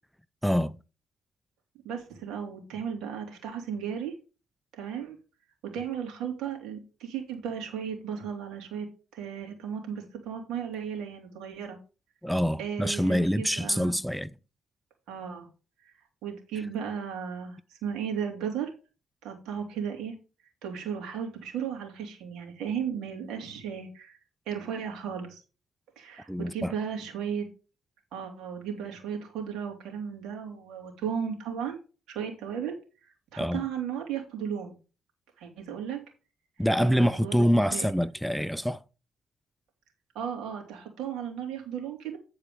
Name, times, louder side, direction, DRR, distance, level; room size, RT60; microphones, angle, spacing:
voice 1, 0.4-0.8 12.2-14.3 26.3-26.7 33.4-33.6 36.6-38.8, equal, ahead, 0.4 m, -25 dB
voice 2, 1.8-4.1 4.7-5.2 5.7-8.9 9.1-11.8 12.6-13.9 15.1-15.5 16.2-18.7 19.2-20.1 20.6-24.2 24.5-25.4 26.0-27.5 28.1-31.8 32.1-32.8 33.3-34.7 35.4-36.0 36.8-37.9 40.1-42.2, right 7 dB, 85° right, 3.1 m, -35 dB
10.5 x 4.7 x 5.2 m
cardioid pair, 90°, 0 cm